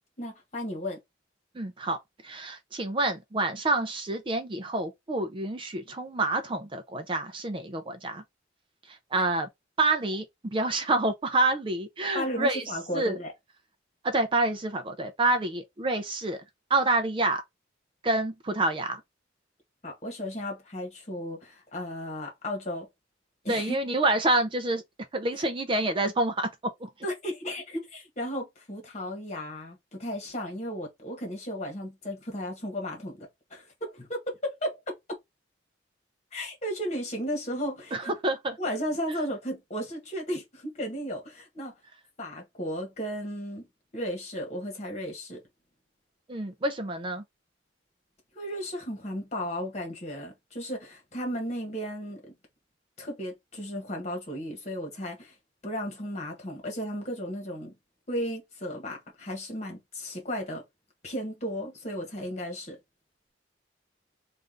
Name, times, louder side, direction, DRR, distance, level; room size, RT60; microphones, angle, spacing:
voice 1, 0.2-1.0 12.1-13.3 19.8-22.9 23.4-23.8 27.0-35.0 36.3-38.1 38.6-41.7 42.2-43.7 43.9-45.4 48.3-52.2 53.0-55.3 55.6-57.7 58.1-60.6 61.0-62.8, equal, 40° left, 1.5 m, -34 dB
voice 2, 1.5-2.0 2.2-8.2 8.9-9.5 9.8-12.6 12.9-13.2 14.0-16.4 16.7-17.4 18.0-19.0 23.5-24.8 25.1-26.9 37.9-38.6 39.1-39.2 46.3-47.2, right 2 dB, 25° right, 0.5 m, -28 dB
3.3 x 2.5 x 3.7 m
head